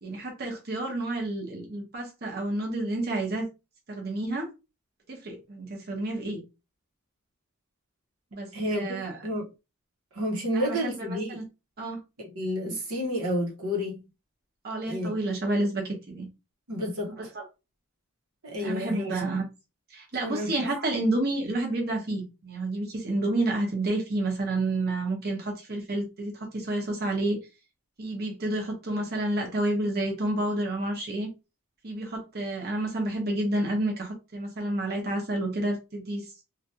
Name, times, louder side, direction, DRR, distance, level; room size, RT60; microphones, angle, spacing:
voice 1, 0.0-3.5 3.9-4.5 5.1-6.4 8.3-9.2 10.5-11.4 11.8-12.0 12.7-12.8 14.6-16.3 17.1-17.4 18.6-19.4 19.9-27.4 28.0-31.3 31.8-36.3, right 2 dB, 45° right, 0.9 m, -30 dB
voice 2, 8.5-9.5 10.1-11.4 12.2-14.1 14.9-15.1 16.7-17.1 18.4-19.1 20.2-20.6, equal, 90° right, 1.1 m, -30 dB
3.2 x 2.4 x 2.7 m
head